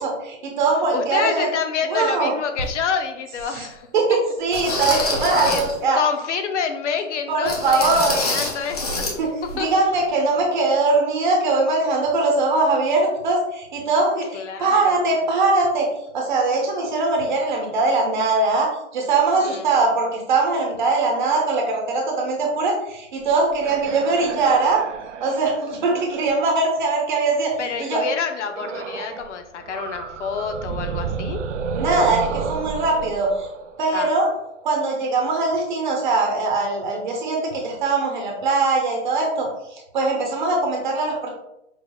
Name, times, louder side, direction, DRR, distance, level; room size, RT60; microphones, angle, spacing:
voice 1, 0.0-1.5 1.9-2.3 3.5-3.7 3.9-6.0 7.3-8.2 9.2-15.9 16.1-24.8 25.2-27.5 27.8-28.0 31.7-33.5 33.8-34.3 34.6-41.3, right 3 dB, 40° right, 1 dB, 0.9 m, -21 dB
voice 2, 0.9-3.9 4.9-5.6 5.9-9.2 9.6-9.8 14.3-15.1 19.4-19.7 27.6-31.4 33.9-34.1, left 6 dB, 70° left, 6 dB, 0.7 m, -28 dB
sound 1, 2.6-2.7 3.4-3.5 4.5-5.8 7.4-9.2 9.4-9.6 10.0-10.1, left 2 dB, 35° left, 0.4 m, -26 dB
sound 2, 23.3-27.4 28.5-29.3 29.6-34.4, right 5 dB, 70° right, 0.5 m, -32 dB
4.7 x 3.3 x 2.2 m, 0.84 s
hypercardioid pair, 175°, 37 cm